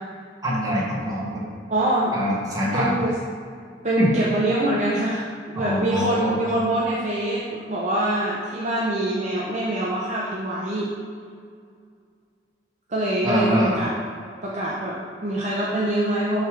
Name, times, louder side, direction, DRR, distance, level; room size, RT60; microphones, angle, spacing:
voice 1, 0.4-1.4 2.1-3.0 4.0-4.1 5.5-6.4 13.2-13.7, equal, 20° right, -6 dB, 1.4 m, -24 dB
voice 2, 1.7-2.2 2.7-3.2 3.8-10.9 12.9-13.9 14.4-16.4, right 1 dB, 40° right, -5 dB, 0.6 m, -24 dB
8.1 x 3.3 x 3.6 m, 2.2 s
head